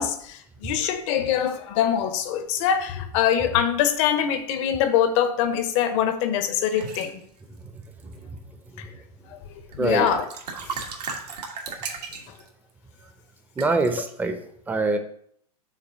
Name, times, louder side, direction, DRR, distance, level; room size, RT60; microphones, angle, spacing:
voice 1, 0.0-7.2 8.8-8.9 9.3-9.4 9.8-10.3 10.6-10.8, left 9 dB, 50° left, 0.9 m, -24 dB
sound 1, 6.7-7.1 7.8-8.4 9.7-9.8 10.0-12.5 13.6-13.9, right 5 dB, 80° right, 1.5 m, -35 dB
voice 2, 13.6-14.3 14.7-15.0, right 3 dB, 10° right, 0.7 m, -23 dB
6.0 x 3.7 x 5.6 m
hypercardioid pair, 115°, 20 cm